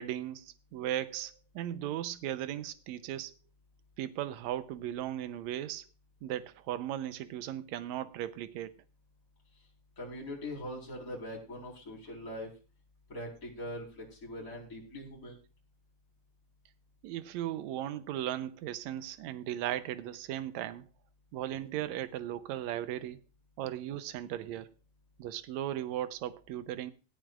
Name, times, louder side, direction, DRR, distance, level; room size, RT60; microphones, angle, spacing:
voice 1, 0.0-3.3 4.0-5.8 6.2-8.7 17.0-20.9 21.3-23.2 23.6-24.7 25.2-26.9, right 12 dB, 80° right, 1.7 m, -37 dB
voice 2, 10.0-12.5 13.1-15.4, left 1 dB, 25° left, 4.4 m, -42 dB
18.0 x 12.5 x 2.4 m
omnidirectional pair, 4.0 m